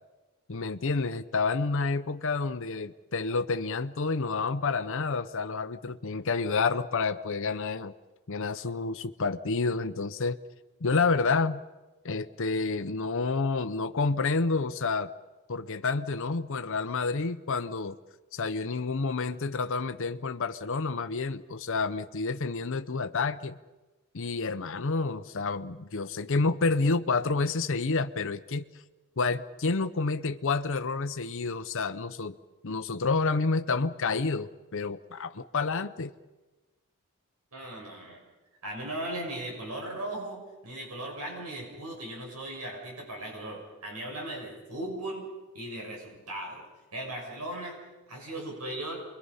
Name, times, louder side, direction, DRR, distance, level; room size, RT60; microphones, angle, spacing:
voice 1, 0.5-7.9 8.3-10.4 10.8-11.6 12.0-15.1 15.5-18.0 18.3-23.6 24.1-28.7 29.2-32.4 32.6-36.1, left 4 dB, 60° left, 9 dB, 0.7 m, -29 dB
voice 2, 37.5-38.3 38.6-45.3 45.5-46.6 46.9-47.8 48.1-49.0, right 1 dB, 90° right, -1 dB, 6.6 m, -37 dB
28.5 x 22.5 x 5.6 m, 1.2 s
head